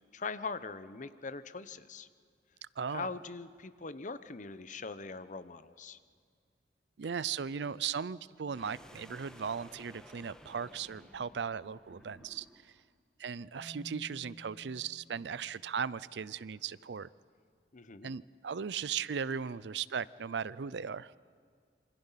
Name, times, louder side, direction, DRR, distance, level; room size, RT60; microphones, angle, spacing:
voice 1, 0.1-2.1 2.9-6.0 17.7-18.1, left 4 dB, 45° left, 13 dB, 0.9 m, -41 dB
voice 2, 2.8-3.1 7.0-12.5 13.2-17.1 18.0-21.1, right 6 dB, 75° right, 20 dB, 0.5 m, -37 dB
sound 1, 8.5-12.8, equal, 5° left, 1.4 m, -56 dB
Marimba xylophone, 13.5-16.5, equal, 15° right, 3.2 m, -53 dB
27.5 x 25.0 x 5.8 m, 2.1 s
head